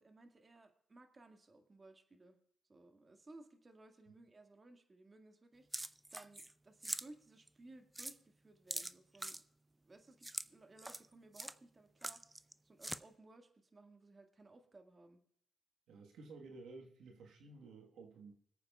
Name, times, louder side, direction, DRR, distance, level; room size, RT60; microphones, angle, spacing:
voice 1, 0.0-2.4 2.7-5.7 6.1-9.4 9.8-15.2, right 2 dB, 30° right, 5 dB, 1.8 m, -60 dB
sound 1, 5.7-6.5 6.8-7.1 7.5-7.6 8.0-8.2 8.7-9.4 10.2-10.5 10.8-11.1 11.3-11.5 12.0-12.5 12.8-13.0, right 1 dB, 15° right, 0.5 m, -43 dB
voice 2, 15.9-18.3, right 3 dB, 80° right, 1 dB, 1.4 m, -54 dB
25.0 x 8.5 x 2.3 m, 0.67 s
cardioid pair, 70°, 0 cm